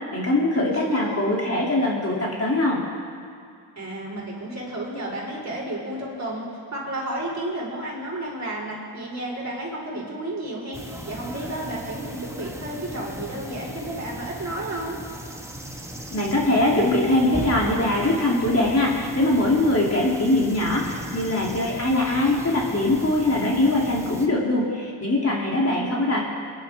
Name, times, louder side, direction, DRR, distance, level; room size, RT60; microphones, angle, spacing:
voice 1, 0.1-2.8 16.1-26.2, left 1 dB, 35° left, -3 dB, 2.8 m, -22 dB
voice 2, 0.6-1.2 3.8-15.0 25.4-26.1, right 1 dB, 40° right, -3 dB, 4.3 m, -32 dB
sound 1, 10.7-24.3, right 1 dB, 5° right, 1.5 m, -37 dB
22.5 x 10.5 x 3.5 m, 2.4 s
cardioid pair, 65°, 43 cm